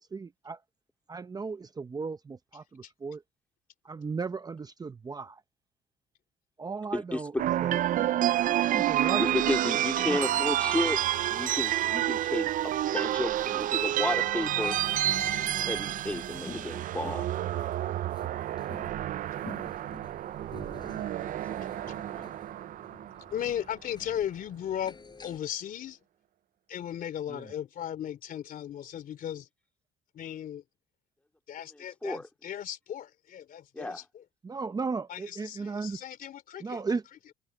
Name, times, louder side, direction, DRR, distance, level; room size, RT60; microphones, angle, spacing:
voice 1, 0.1-0.6 1.1-3.2 3.8-5.4 6.6-8.1 8.7-9.4 10.0-10.2 19.4-19.7 27.3-27.4 34.4-36.0 36.6-37.0, right 4 dB, 20° right, 0.8 m, -36 dB
voice 2, 6.9-7.4 9.2-11.0 11.3-14.8 15.5-17.3 21.1-21.6 22.0-22.3 32.0-32.2 33.7-34.0, left 1 dB, 10° left, 2.3 m, -33 dB
sound 1, 7.4-23.6, right 13 dB, 55° right, 0.5 m, -29 dB
sound 2, 11.6-25.4, left 4 dB, 25° left, 5.5 m, -49 dB
voice 3, 23.3-26.0 26.7-29.5 30.1-30.6 31.5-34.2 35.1-36.8, left 10 dB, 55° left, 2.9 m, -36 dB
cardioid pair, 110°, 17 cm